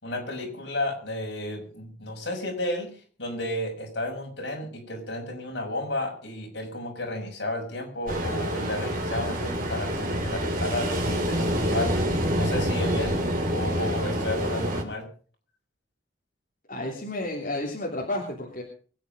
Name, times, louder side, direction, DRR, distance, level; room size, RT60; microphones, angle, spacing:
voice 1, 0.0-2.9 3.2-11.9 12.4-13.2 13.5-15.0, left 1 dB, 60° left, 0 dB, 6.4 m, -32 dB
Ocean, 8.1-14.8, equal, 45° right, 3.1 m, -27 dB
voice 2, 16.7-18.6, left 1 dB, 45° left, -2 dB, 3.1 m, -31 dB
23.0 x 9.3 x 5.3 m, 0.41 s
head